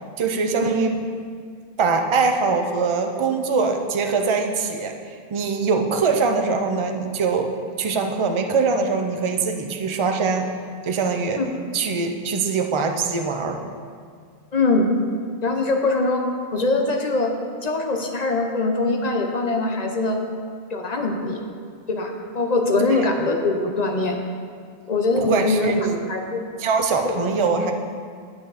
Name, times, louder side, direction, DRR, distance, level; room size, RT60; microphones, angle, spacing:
voice 1, 0.2-1.0 1.8-7.5 7.8-10.5 10.8-11.4 11.7-13.6 22.9-23.0 25.2-26.0 26.6-27.7, right 4 dB, 35° right, 4 dB, 0.6 m, -22 dB
voice 2, 14.5-14.9 15.4-16.2 16.5-17.3 17.6-20.2 20.7-21.4 21.9-24.2 24.9-25.7 26.1-26.4 27.0-27.2, left 3 dB, 45° left, 3 dB, 0.9 m, -22 dB
9.1 x 8.7 x 4.1 m, 2.1 s
omnidirectional pair, 1.1 m